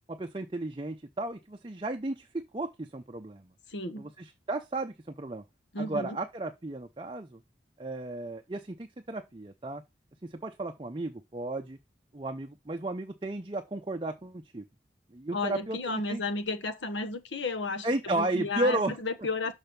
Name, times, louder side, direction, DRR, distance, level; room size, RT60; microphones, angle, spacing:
voice 1, 0.1-2.3 2.5-3.5 4.0-5.4 5.8-7.4 7.8-9.8 10.2-11.8 12.1-14.6 15.1-16.2 17.8-19.0, right 2 dB, 25° right, 0.6 m, -34 dB
voice 2, 3.7-4.1 5.7-6.2 15.3-19.5, left 3 dB, 85° left, 1.2 m, -33 dB
6.3 x 5.7 x 5.2 m
head